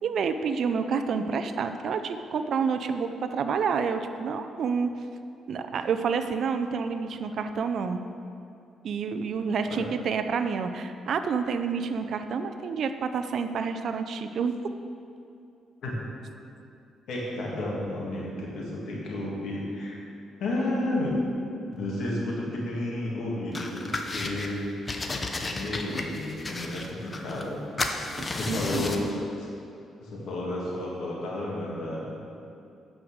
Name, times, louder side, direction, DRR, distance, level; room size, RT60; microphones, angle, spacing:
voice 1, 0.0-4.9 5.5-8.0 8.8-14.6 28.2-29.2, right 5 dB, 65° right, 8 dB, 0.5 m, -29 dB
voice 2, 17.1-20.0 20.4-21.1 21.7-24.6 25.5-27.6 27.9-28.1 28.3-29.5 30.0-32.4, left 1 dB, 75° left, -4 dB, 2.3 m, -32 dB
sound 1, 23.5-24.5 24.9-27.5 27.8-29.1, left 2 dB, 30° left, 0.8 m, -33 dB
9.7 x 5.1 x 6.4 m, 2.6 s
cardioid pair, 90°, 0 cm